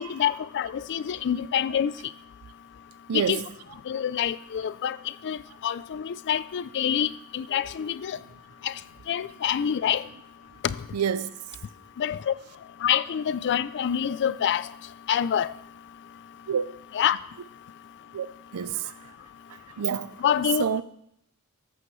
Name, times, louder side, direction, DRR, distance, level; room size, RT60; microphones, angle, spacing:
voice 1, 0.0-1.9 3.1-3.4 3.9-5.0 5.2-8.2 8.6-8.7 9.1-10.0 10.6-10.8 12.0-12.3 12.8-14.7 15.1-15.5 16.9-17.2 20.2-20.6, left 9 dB, 50° left, 0.4 m, -26 dB
voice 2, 3.1-3.4 10.9-11.3 16.5-16.6 18.1-18.3 18.5-18.9 19.8-20.1 20.6-20.8, right 7 dB, 80° right, 0.4 m, -27 dB
14.0 x 8.7 x 3.1 m
head